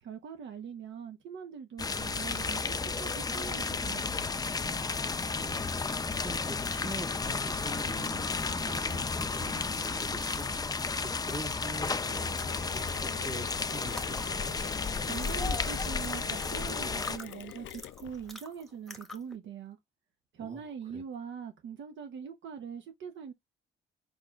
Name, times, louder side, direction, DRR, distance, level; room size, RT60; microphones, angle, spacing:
voice 1, 0.0-4.1 15.0-19.8 20.3-23.3, right 7 dB, 70° right, 0.9 m, -42 dB
sound 1, 1.8-17.2, left 4 dB, 20° left, 0.5 m, -33 dB
voice 2, 5.0-5.8 6.2-14.6 20.4-21.0, right 1 dB, 35° right, 2.0 m, -45 dB
Mechanisms, 12.1-18.3, left 12 dB, 70° left, 0.5 m, -45 dB
sound 2, 13.9-19.3, left 1 dB, ahead, 1.3 m, -48 dB
5.4 x 4.0 x 2.4 m
cardioid pair, 90°, 20 cm